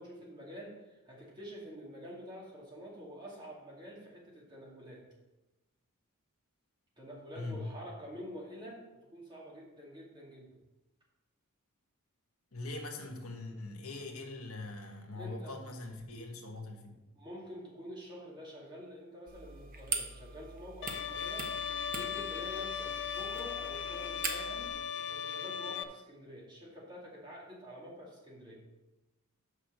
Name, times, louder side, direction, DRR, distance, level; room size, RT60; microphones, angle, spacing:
voice 1, 0.0-5.0 7.0-8.8 9.1-10.5 15.1-15.5 17.1-21.5 21.7-24.7 25.1-28.6, equal, 20° right, -4 dB, 2.3 m, -47 dB
voice 2, 7.3-7.7 12.5-16.9, left 2 dB, 75° left, 2 dB, 1.3 m, -42 dB
sound 1, 19.3-24.7, right 5 dB, 40° right, 1.0 m, -42 dB
Bowed string instrument, 20.8-25.8, left 8 dB, 55° left, 0.5 m, -37 dB
6.3 x 6.0 x 6.5 m, 1.1 s
head